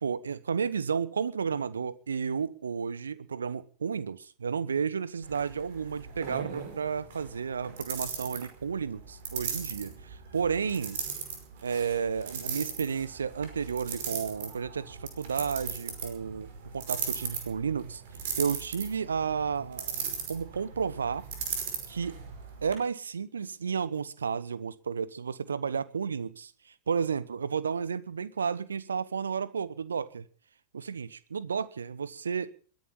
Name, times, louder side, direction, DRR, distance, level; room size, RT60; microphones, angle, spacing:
voice 1, 0.0-11.0 11.6-18.0 18.4-21.2 21.9-22.2 22.6-30.2 30.7-32.5, right 6 dB, 70° right, 1.0 m, -32 dB
sound 1, 5.2-22.8, right 6 dB, 55° right, 5.3 m, -38 dB
21.5 x 10.5 x 5.7 m
figure-of-eight pair, 90°, 0 cm